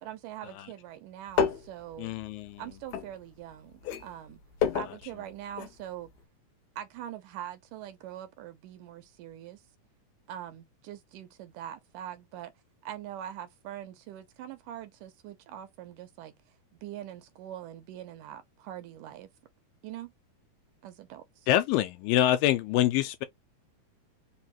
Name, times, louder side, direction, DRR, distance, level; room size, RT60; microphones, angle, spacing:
voice 1, 0.0-2.1 2.6-4.4 4.7-6.1 6.8-9.6 10.3-12.5 12.8-16.3 16.7-19.3 19.8-20.1 20.8-21.5, right 11 dB, 80° right, 2.2 m, -43 dB
sound 1, 1.3-3.5 3.8-5.8 6.1-6.2, left 7 dB, 70° left, 2.0 m, -31 dB
voice 2, 2.0-2.6 21.5-23.2, left 13 dB, 90° left, 2.3 m, -25 dB
5.4 x 2.4 x 2.9 m
omnidirectional pair, 4.0 m